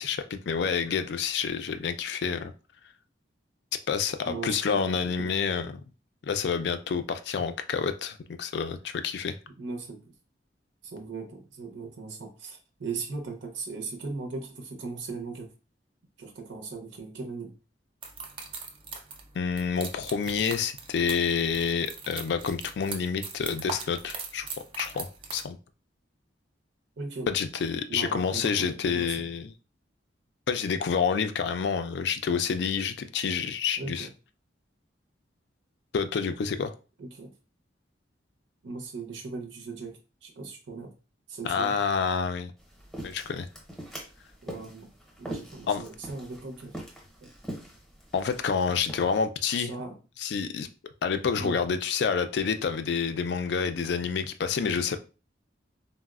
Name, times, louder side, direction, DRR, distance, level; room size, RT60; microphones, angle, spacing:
voice 1, 0.0-2.5 3.9-5.8 6.2-9.4 19.3-24.5 24.8-25.6 27.3-29.5 30.5-34.1 35.9-36.7 41.4-42.5 43.0-43.5 45.7-45.8 48.1-49.7 50.2-50.7 51.0-55.0, left 6 dB, 65° left, 0.3 m, -28 dB
voice 2, 4.3-4.8 5.2-5.3 9.6-10.1 10.8-15.5 16.2-17.5 27.0-27.3 27.9-29.2 33.8-34.1 37.0-37.3 38.6-40.9 41.3-41.7 44.4-44.9 45.2-46.8 47.2-47.3 49.6-49.9 51.4-51.6, right 4 dB, 80° right, 0.6 m, -38 dB
sound 1, 18.0-25.4, right 4 dB, 30° right, 0.4 m, -41 dB
sound 2, 42.6-49.2, right 1 dB, ahead, 0.7 m, -43 dB
3.9 x 2.0 x 2.3 m
head